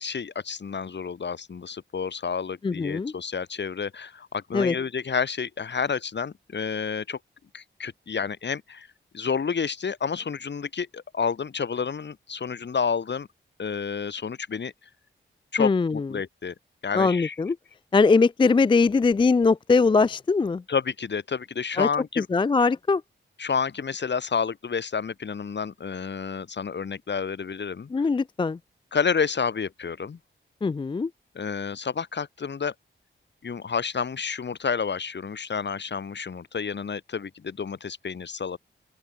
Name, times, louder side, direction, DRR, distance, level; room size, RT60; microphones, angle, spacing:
voice 1, 0.0-7.2 7.5-8.9 9.1-13.3 13.6-14.7 15.5-16.5 16.8-17.4 20.7-22.3 23.4-27.9 28.9-30.2 31.3-32.7 33.4-38.6, left 6 dB, 65° left, 4.0 m, -30 dB
voice 2, 2.6-3.1 4.5-4.7 15.6-16.1 16.9-17.6 17.9-20.6 21.8-21.9 22.2-23.0 27.9-28.6 30.6-31.1, left 4 dB, 25° left, 0.4 m, -21 dB
open air
wide cardioid pair, 110°, 20 cm